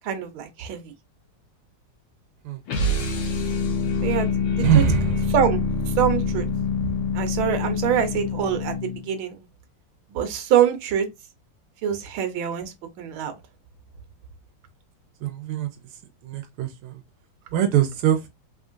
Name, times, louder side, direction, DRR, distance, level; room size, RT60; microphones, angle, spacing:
voice 1, 0.0-0.9 4.0-4.8 5.3-5.6 6.0-6.4 7.1-9.4 10.1-11.1 11.8-13.4, right 9 dB, 70° right, 1.6 m, -25 dB
sound 1, 2.7-9.1, left 3 dB, 70° left, 2.0 m, -25 dB
voice 2, 4.6-5.2 15.2-15.7 16.2-16.9 17.5-18.2, right 9 dB, 90° right, 1.5 m, -22 dB
4.4 x 3.6 x 2.4 m
omnidirectional pair, 2.4 m